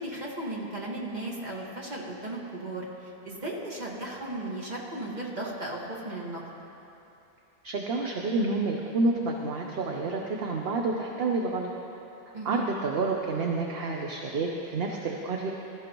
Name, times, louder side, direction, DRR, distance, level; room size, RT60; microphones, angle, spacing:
voice 1, 0.0-6.4 12.3-12.7, right 1 dB, 40° right, -3 dB, 1.9 m, -36 dB
voice 2, 7.6-11.7 12.4-15.5, right 3 dB, 60° right, 1 dB, 1.0 m, -29 dB
20.0 x 13.5 x 3.0 m, 2.9 s
omnidirectional pair, 1.1 m